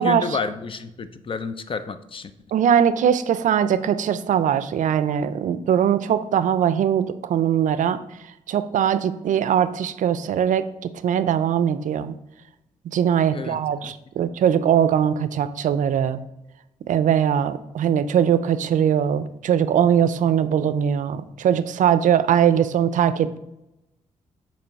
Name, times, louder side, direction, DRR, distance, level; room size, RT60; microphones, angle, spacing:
voice 1, 0.0-2.3 13.3-13.9, left 5 dB, 40° left, 12 dB, 0.5 m, -30 dB
voice 2, 2.5-8.0 8.5-10.6 11.0-12.2 12.9-16.2 16.9-23.4, right 9 dB, 70° right, 13 dB, 0.4 m, -21 dB
6.8 x 3.0 x 4.6 m, 0.90 s
cardioid pair, 70°, 14 cm